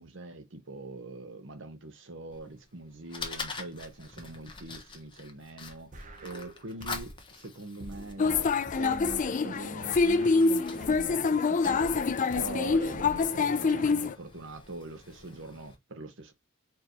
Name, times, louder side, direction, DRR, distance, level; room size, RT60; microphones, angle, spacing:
voice 1, 0.0-8.5 8.8-16.3, right 2 dB, 60° right, 1.0 m, -43 dB
Fire, 2.3-15.7, left 4 dB, 25° left, 0.9 m, -46 dB
sound 1, 5.9-7.3 7.8-11.3 11.8-13.9, right 1 dB, 40° right, 0.9 m, -46 dB
sound 2, 8.2-14.1, left 4 dB, 40° left, 0.4 m, -26 dB
4.6 x 2.9 x 3.0 m
head